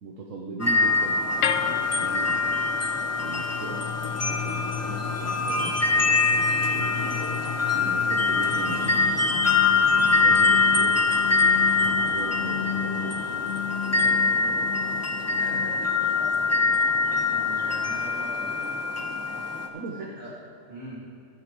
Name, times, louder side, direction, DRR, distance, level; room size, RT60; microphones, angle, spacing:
voice 1, 0.0-2.7 3.2-6.9 7.7-9.5 9.9-13.4 19.7-20.1, right 3 dB, 70° right, -2 dB, 1.3 m, -39 dB
sound 1, 0.6-19.7, left 4 dB, 15° left, 0.6 m, -24 dB
sound 2, 1.4-17.6, left 8 dB, 70° left, 0.9 m, -37 dB
sound 3, 8.4-16.2, left 10 dB, 55° left, 3.4 m, -35 dB
voice 2, 13.9-14.6 15.3-16.6 17.1-18.7 20.0-20.3 20.7-21.0, right 1 dB, 45° right, -6 dB, 2.7 m, -42 dB
14.5 x 13.5 x 3.1 m, 2.8 s
omnidirectional pair, 1.4 m